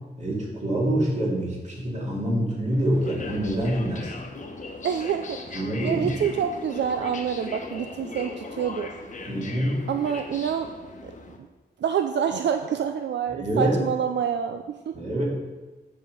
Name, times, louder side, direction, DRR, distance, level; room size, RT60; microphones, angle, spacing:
voice 1, 0.2-4.1 5.5-6.1 9.3-9.8 13.4-13.7 14.9-15.2, right 1 dB, 40° right, -3 dB, 2.6 m, -26 dB
sound 1, 2.7-11.4, left 3 dB, 45° left, 1.0 m, -39 dB
voice 2, 4.8-5.4 5.8-8.9 9.9-10.7 11.0-11.1 11.8-14.9, right 8 dB, 85° right, 7 dB, 0.5 m, -27 dB
8.3 x 6.6 x 5.2 m, 1.2 s
wide cardioid pair, 160°, 18 cm